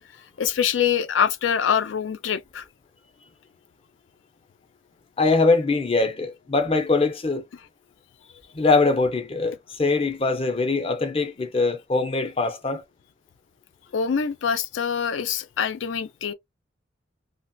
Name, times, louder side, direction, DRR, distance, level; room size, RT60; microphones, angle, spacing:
voice 1, 0.4-2.6 13.9-16.3, left 7 dB, 75° left, 0.4 m, -24 dB
voice 2, 5.2-7.4 8.5-12.8, left 3 dB, 30° left, 0.6 m, -22 dB
3.0 x 2.7 x 2.2 m
head